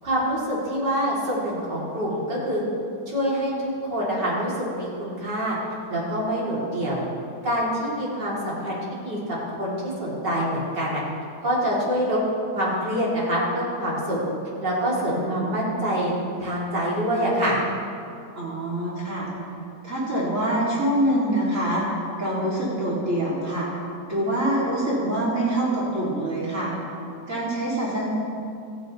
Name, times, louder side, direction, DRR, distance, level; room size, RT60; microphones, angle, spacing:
voice 1, 0.0-2.6 3.1-5.6 5.9-7.0 7.4-8.8 9.0-11.0 11.4-12.2 12.5-14.2 14.6-16.1 16.4-17.6, equal, 70° right, -7 dB, 4.1 m, -26 dB
voice 2, 15.1-15.5 18.3-19.3 19.8-21.8 22.2-23.7 24.1-26.7 27.3-28.1, right 1 dB, 45° right, -7 dB, 3.3 m, -25 dB
26.0 x 9.3 x 3.3 m, 2.5 s
omnidirectional pair, 1.9 m